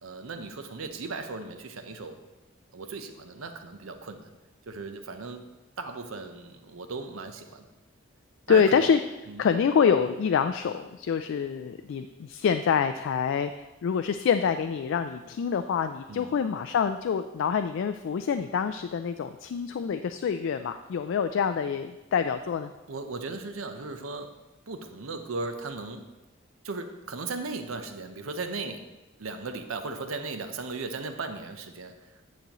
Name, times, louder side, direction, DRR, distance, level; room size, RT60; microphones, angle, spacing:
voice 1, 0.0-2.2 2.7-4.3 4.7-5.4 5.8-7.7 8.5-8.9 9.3-9.4 16.1-16.3 22.9-24.4 24.7-26.0 26.6-28.8 29.2-32.3, right 3 dB, 80° right, 7 dB, 0.7 m, -37 dB
voice 2, 8.5-9.0 9.4-22.7, left 6 dB, 65° left, 8 dB, 0.3 m, -26 dB
9.2 x 6.9 x 3.0 m, 1.1 s
head